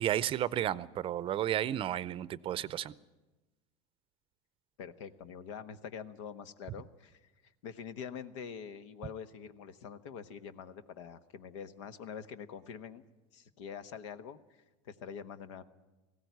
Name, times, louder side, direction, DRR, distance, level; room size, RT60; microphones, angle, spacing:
voice 1, 0.0-2.9, right 11 dB, 35° right, 18 dB, 0.6 m, -32 dB
voice 2, 4.8-13.0 13.3-15.6, left 7 dB, 85° left, 12 dB, 1.1 m, -45 dB
19.0 x 16.0 x 9.4 m, 1.1 s
supercardioid pair, 125°, 15 cm